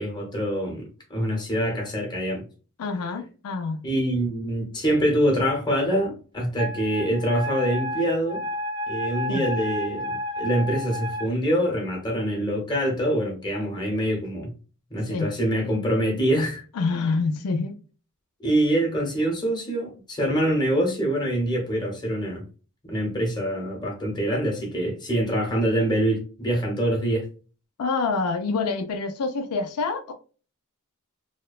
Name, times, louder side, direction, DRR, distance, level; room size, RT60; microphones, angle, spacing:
voice 1, 0.0-2.4 3.8-8.5 8.9-14.5 14.9-16.6 18.4-22.4 22.9-27.3, right 1 dB, 20° left, 0.9 m, -25 dB
voice 2, 2.8-3.8 9.3-9.4 15.1-15.3 16.8-17.8 27.8-30.1, left 4 dB, 85° left, 0.4 m, -26 dB
Wind instrument woodwind instrument, 6.6-11.3, left 1 dB, 20° right, 0.4 m, -31 dB
2.8 x 2.1 x 2.3 m
head